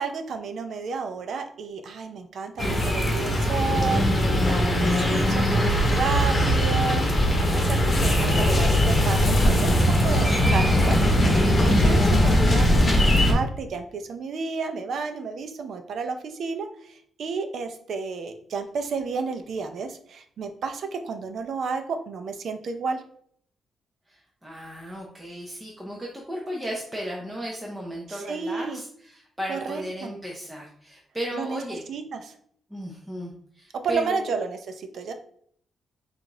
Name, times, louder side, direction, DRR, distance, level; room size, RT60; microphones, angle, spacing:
voice 1, 0.0-7.0 7.4-11.0 11.6-23.0 28.1-28.8 29.5-30.1 31.3-31.6 31.9-32.4 33.8-35.1, right 4 dB, 55° right, 6 dB, 0.6 m, -31 dB
sound 1, 2.6-13.3, equal, 25° left, 1.1 m, -20 dB
voice 2, 24.1-31.8 32.7-34.4, equal, 5° right, -3 dB, 0.6 m, -35 dB
4.9 x 2.5 x 3.7 m, 0.63 s
wide cardioid pair, 160°, 0 cm